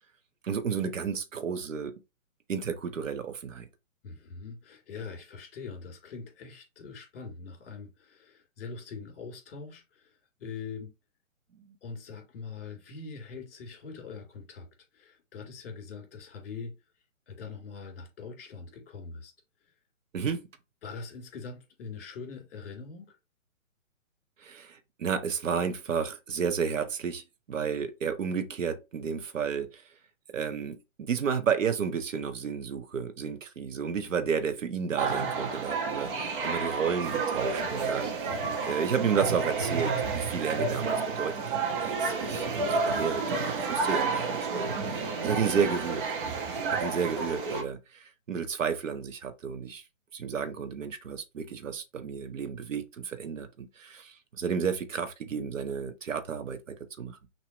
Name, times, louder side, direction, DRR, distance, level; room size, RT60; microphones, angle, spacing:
voice 1, 0.4-2.0 2.5-3.7 20.1-20.4 24.4-29.8 30.3-38.4 38.7-46.0 46.7-49.8 50.1-57.2, right 6 dB, 70° right, 1.0 m, -32 dB
voice 2, 4.0-10.9 11.8-14.7 14.9-16.7 17.3-19.3 20.8-23.2 46.7-47.1, left 5 dB, 45° left, 2.7 m, -43 dB
sound 1, 35.0-47.6, right 4 dB, 40° right, 1.2 m, -30 dB
6.1 x 3.0 x 2.8 m
hypercardioid pair, 145°, 40 cm